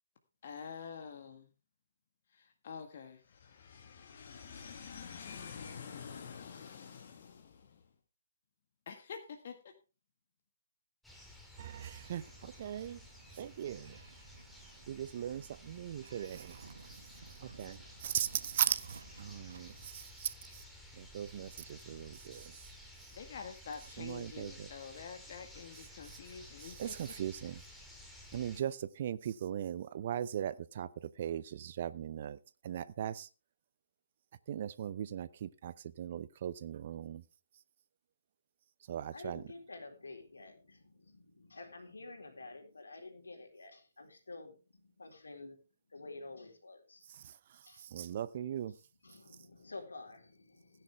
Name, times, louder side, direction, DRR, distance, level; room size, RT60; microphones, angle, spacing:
voice 1, 0.4-1.5 2.3-7.8 8.8-9.6 23.1-27.0, left 6 dB, 45° left, 1.8 m, -47 dB
sound 1, 11.0-28.6, left 1 dB, ahead, 2.6 m, -54 dB
voice 2, 11.6-13.0 13.4-14.0 14.9-16.7 17.4-20.6 21.0-22.6 24.0-24.7 26.1-26.2 26.6-27.6 28.3-32.4 32.6-33.3 34.5-37.2 38.9-39.4 47.2-47.3 47.8-48.7, right 10 dB, 40° right, 0.7 m, -39 dB
sound 2, 12.0-19.9, right 5 dB, 60° right, 1.1 m, -56 dB
voice 3, 39.0-45.6 45.9-47.1 47.6-47.9 48.7-50.8, left 3 dB, 70° left, 4.1 m, -50 dB
16.5 x 10.5 x 3.5 m
figure-of-eight pair, 140°, 0 cm